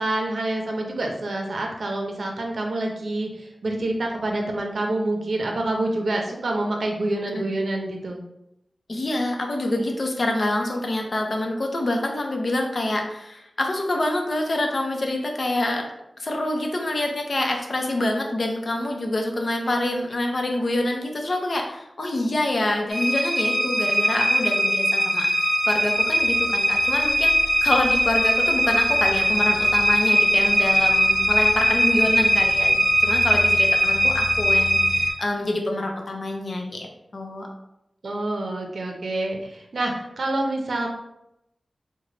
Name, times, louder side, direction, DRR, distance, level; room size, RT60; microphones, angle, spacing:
voice 1, 0.0-8.2 38.0-40.9, right 2 dB, 70° right, 1 dB, 0.6 m, -27 dB
voice 2, 8.9-15.9 16.2-25.3 25.7-27.3 27.6-37.5, left 1 dB, 50° left, 2 dB, 0.6 m, -26 dB
sound 1, 22.9-35.1, equal, 15° left, 1.1 m, -20 dB
3.8 x 2.1 x 3.2 m, 0.84 s
wide cardioid pair, 100°, 0 cm